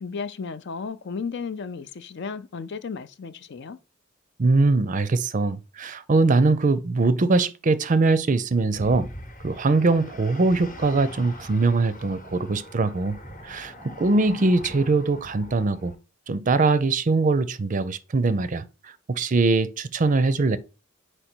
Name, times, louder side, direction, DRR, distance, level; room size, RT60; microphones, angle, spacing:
voice 1, 0.0-3.8, left 5 dB, 55° left, 0.5 m, -34 dB
voice 2, 4.4-9.1 9.4-13.2 13.4-15.9 16.3-18.6 19.1-20.6, right 3 dB, 40° right, 0.5 m, -22 dB
sound 1, 8.7-16.0, left 1 dB, 40° left, 1.0 m, -42 dB
5.1 x 4.5 x 4.4 m
head